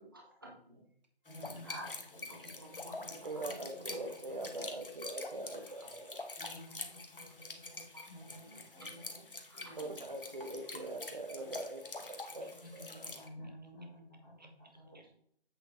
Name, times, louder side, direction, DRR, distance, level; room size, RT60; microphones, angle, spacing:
voice 1, 0.1-0.8 1.6-1.9 2.4-3.2 7.9-8.0 8.4-8.9 9.5-10.1 10.7-10.8 12.3-12.4 14.8-15.1, equal, 20° right, -2 dB, 1.1 m, -52 dB
voice 2, 1.2-3.3 3.7-3.9 6.4-9.2 9.5-9.8 12.6-14.8, equal, ahead, -22 dB, 1.8 m, -53 dB
sound 1, 1.3-13.3, left 2 dB, 55° left, 1.1 m, -46 dB
voice 3, 3.2-6.3 9.8-13.2 14.4-14.5, right 2 dB, 40° right, 5 dB, 1.2 m, -43 dB
8.1 x 6.4 x 3.1 m, 0.63 s
figure-of-eight pair, 165°, 33 cm